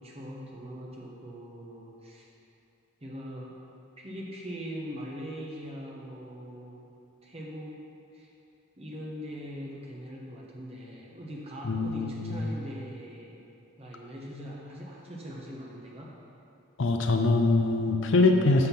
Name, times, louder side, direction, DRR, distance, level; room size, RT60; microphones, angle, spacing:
voice 1, 0.0-2.2 3.0-3.6 4.0-6.8 7.2-7.9 8.1-8.3 8.8-13.4 13.8-16.1, equal, 30° right, -3 dB, 1.1 m, -41 dB
voice 2, 11.6-12.4 16.8-18.7, left 3 dB, 60° left, 4 dB, 0.5 m, -23 dB
6.7 x 5.6 x 5.8 m, 2.7 s
head